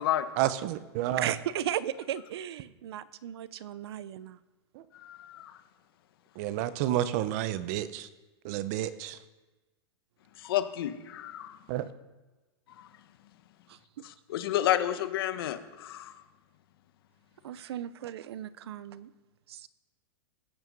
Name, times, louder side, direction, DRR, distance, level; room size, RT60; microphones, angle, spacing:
voice 1, 0.4-1.3 4.7-4.8 6.4-8.1 8.4-9.2 11.7-11.9, right 13 dB, 40° right, 14 dB, 0.8 m, -30 dB
voice 2, 1.2-4.4 13.7-14.1 17.4-19.1 19.5-19.7, right 11 dB, 75° right, 17 dB, 0.7 m, -36 dB
voice 3, 4.9-5.6 10.4-11.6 12.8-12.9 14.0-16.2, left 12 dB, 60° left, 10 dB, 1.2 m, -31 dB
15.5 x 9.3 x 5.3 m, 1.2 s
supercardioid pair, 160°, 13 cm